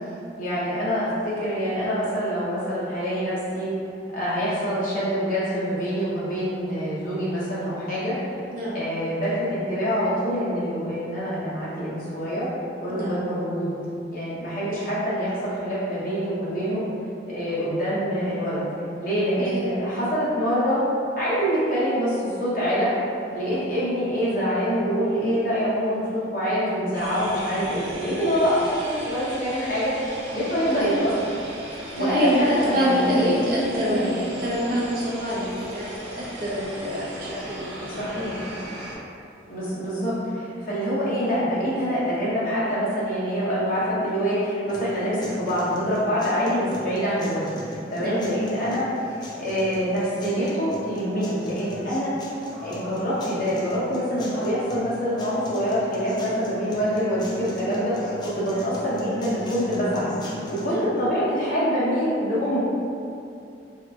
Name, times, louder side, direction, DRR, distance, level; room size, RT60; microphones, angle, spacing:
voice 1, 0.4-3.7 4.1-8.1 8.7-12.5 12.8-13.7 14.1-16.8 17.3-18.6 19.0-20.8 21.2-22.9 23.3-26.0 26.3-31.1 31.9-33.4 33.9-34.2 38.0-38.4 39.5-47.5 47.9-48.8 49.3-52.1 52.6-60.1 60.5-62.6, equal, 50° left, -9 dB, 0.8 m, -25 dB
voice 2, 8.5-8.8 12.9-13.2 19.5-19.6 32.0-38.4 48.0-48.2 60.6-60.8, equal, 50° right, -6 dB, 0.7 m, -26 dB
sound 1, 26.9-38.9, equal, 85° right, 0.9 m, -37 dB
sound 2, 44.7-60.7, left 1 dB, 25° left, 0.4 m, -40 dB
2.8 x 2.3 x 3.5 m, 2.6 s
head